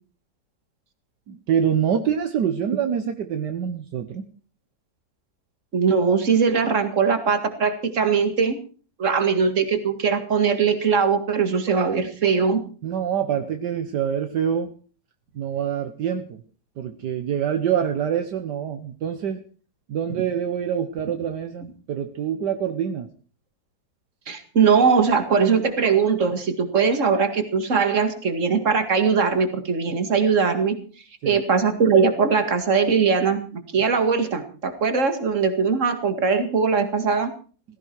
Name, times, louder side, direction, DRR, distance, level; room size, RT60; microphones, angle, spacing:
voice 1, 1.3-4.2 12.8-14.7 15.3-16.4 16.8-19.4 19.9-23.1 31.2-31.4, right 8 dB, 70° right, 7 dB, 1.6 m, -25 dB
voice 2, 5.7-8.6 9.0-12.6 24.3-30.8 31.3-37.3, right 5 dB, 45° right, 7 dB, 2.3 m, -21 dB
17.5 x 16.0 x 4.6 m, 0.40 s
omnidirectional pair, 2.0 m